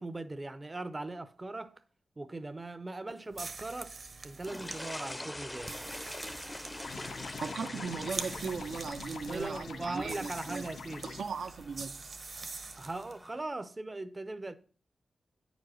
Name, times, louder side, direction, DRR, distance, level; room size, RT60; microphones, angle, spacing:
voice 1, 0.0-1.8 2.2-4.0 4.2-5.8 9.3-11.2 12.8-14.5, right 2 dB, 30° right, 0.6 m, -39 dB
sound 1, 3.3-13.2, right 3 dB, 55° right, 1.0 m, -45 dB
sound 2, 4.4-13.4, left 1 dB, 15° left, 0.6 m, -45 dB
sound 3, 6.8-11.2, left 5 dB, 90° left, 0.9 m, -44 dB
voice 2, 7.4-10.7 11.0-12.2, right 5 dB, 80° right, 0.7 m, -38 dB
9.1 x 5.1 x 6.3 m
cardioid pair, 70°, 0 cm